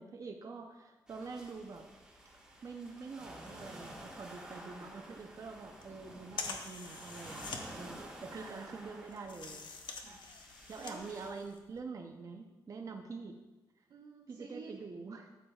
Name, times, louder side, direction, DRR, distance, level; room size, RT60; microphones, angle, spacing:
voice 1, 0.0-1.8 2.6-9.7 10.7-13.4 14.3-15.3, right 4 dB, 45° right, 3 dB, 0.6 m, -46 dB
sound 1, 1.1-11.3, right 1 dB, 10° right, 1.4 m, -51 dB
sound 2, 3.9-11.8, left 4 dB, 70° left, 0.9 m, -47 dB
voice 2, 7.2-7.8 8.3-8.8 10.0-11.0 13.9-14.8, right 4 dB, 90° right, -6 dB, 1.3 m, -52 dB
13.0 x 7.8 x 2.3 m, 1.1 s
wide cardioid pair, 115°, 8 cm